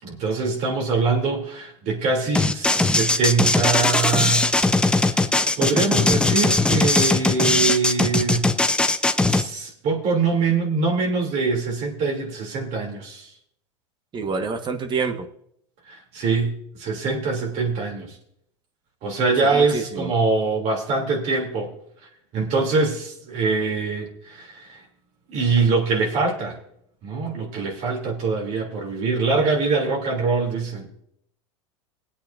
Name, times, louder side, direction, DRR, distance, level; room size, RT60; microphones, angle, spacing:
voice 1, 0.0-5.3 5.6-8.5 9.2-13.3 15.9-18.2 19.0-21.7 22.3-24.8 25.3-26.6 27.0-30.9, right 4 dB, 50° right, 1 dB, 3.0 m, -24 dB
sound 1, 2.3-9.4, left 2 dB, 5° left, 0.7 m, -19 dB
voice 2, 14.1-15.3 19.4-20.1, right 4 dB, 30° right, 7 dB, 1.4 m, -27 dB
20.5 x 8.6 x 2.6 m, 0.70 s
hypercardioid pair, 95°, 15 cm